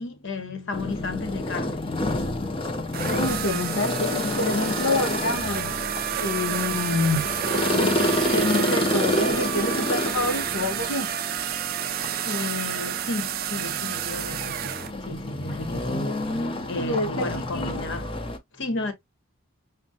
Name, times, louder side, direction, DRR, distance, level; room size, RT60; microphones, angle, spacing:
voice 1, 0.0-1.8 12.2-14.8 15.0-18.1 18.5-18.9, left 2 dB, 60° left, 1.0 m, -33 dB
sound 1, 0.7-18.4, left 1 dB, 25° left, 0.6 m, -29 dB
sound 2, 2.9-14.9, right 10 dB, 45° right, 0.3 m, -30 dB
voice 2, 3.0-5.7 6.2-7.3 7.7-7.9 8.3-11.1 16.7-17.8, left 2 dB, 75° left, 0.7 m, -27 dB
6.4 x 2.2 x 2.7 m
head